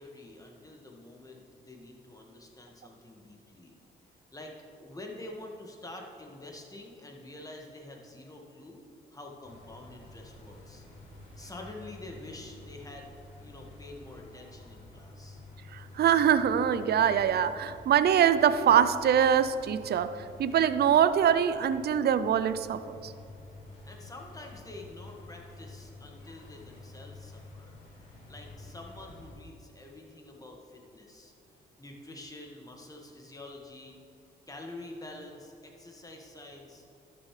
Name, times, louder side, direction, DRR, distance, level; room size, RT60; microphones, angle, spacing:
voice 1, 0.0-3.7 4.3-8.8 9.1-10.8 11.4-15.4 23.8-27.7 28.3-31.3 31.8-34.0 34.5-36.8, left 2 dB, 15° left, 1 dB, 1.6 m, -47 dB
sound 1, 9.4-29.3, left 2 dB, 90° left, 2.2 m, -50 dB
voice 2, 15.7-23.1, right 9 dB, 55° right, 13 dB, 0.5 m, -24 dB
12.5 x 6.9 x 3.2 m, 2.7 s
supercardioid pair, 60°, 20 cm